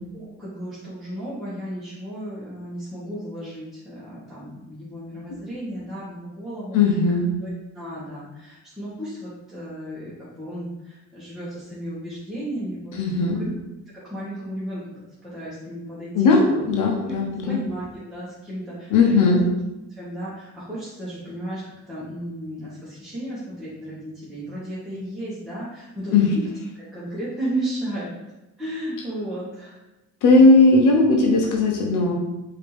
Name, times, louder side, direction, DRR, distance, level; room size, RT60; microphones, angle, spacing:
voice 1, 0.1-13.0 13.2-13.5 14.1-14.8 15.2-16.6 17.0-17.2 17.5-19.4 19.9-26.4 26.8-28.1 28.6-29.8, right 1 dB, ahead, -10 dB, 1.6 m, -34 dB
voice 2, 6.7-7.3 13.0-13.4 16.1-17.6 18.9-19.4 26.1-26.3 30.2-32.1, left 3 dB, 80° left, 0 dB, 0.9 m, -17 dB
5.0 x 3.0 x 3.4 m, 0.97 s
cardioid pair, 90°, 30 cm